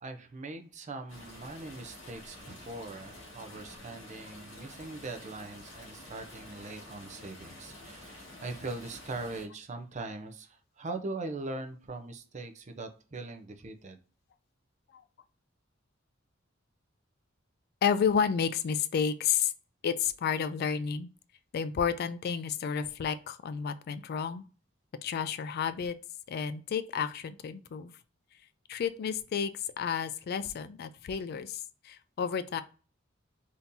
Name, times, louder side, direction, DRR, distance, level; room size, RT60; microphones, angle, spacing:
voice 1, 0.0-14.0, right 2 dB, 35° right, 0.5 m, -41 dB
sound 1, 1.1-9.4, left 1 dB, 70° left, 1.8 m, -49 dB
voice 2, 17.8-19.5 19.8-21.1 21.5-24.4 25.0-25.9 26.3-27.9 28.7-32.6, left 7 dB, 50° left, 0.3 m, -31 dB
3.7 x 2.8 x 2.6 m
head